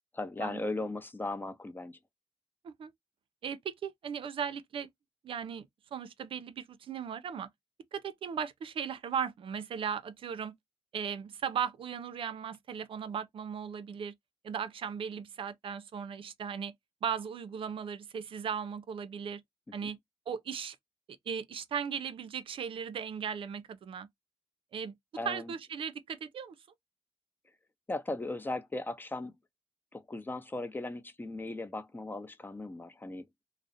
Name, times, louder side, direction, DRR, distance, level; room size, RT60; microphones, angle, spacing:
voice 1, 0.1-2.0 19.8-19.9 25.2-25.5 27.9-29.3 29.9-33.3, left 2 dB, 20° left, 0.5 m, -37 dB
voice 2, 3.4-4.9 5.2-5.7 5.9-7.5 7.9-10.5 10.9-14.1 14.4-16.7 17.0-19.4 19.7-20.0 20.3-20.8 21.3-24.1 24.7-24.9 25.2-26.6, right 7 dB, 70° right, 0.4 m, -37 dB
2.3 x 2.0 x 2.6 m
cardioid pair, 70°, 10 cm